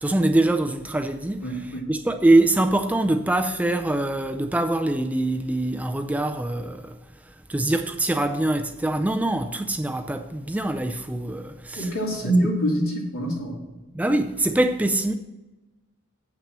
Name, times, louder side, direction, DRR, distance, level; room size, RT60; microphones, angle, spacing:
voice 1, 0.0-7.0 7.2-11.9 12.2-12.3 13.9-15.1, right 2 dB, 5° right, 0.4 m, -24 dB
voice 2, 1.4-1.9 11.8-13.6, right 1 dB, 75° left, 2.8 m, -25 dB
8.7 x 6.0 x 6.0 m
head